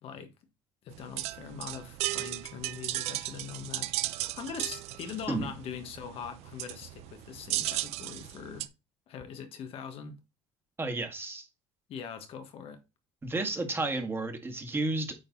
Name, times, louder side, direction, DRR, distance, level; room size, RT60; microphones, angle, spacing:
voice 1, 0.0-0.3 0.8-8.7 9.1-10.2 11.9-12.8, left 7 dB, 60° left, 1.4 m, -42 dB
sound 1, 0.9-8.7, right 16 dB, 70° right, 0.6 m, -35 dB
voice 2, 10.8-11.5 13.2-15.1, right 2 dB, 20° right, 1.9 m, -32 dB
8.9 x 3.9 x 4.0 m
supercardioid pair, 100°, 11 cm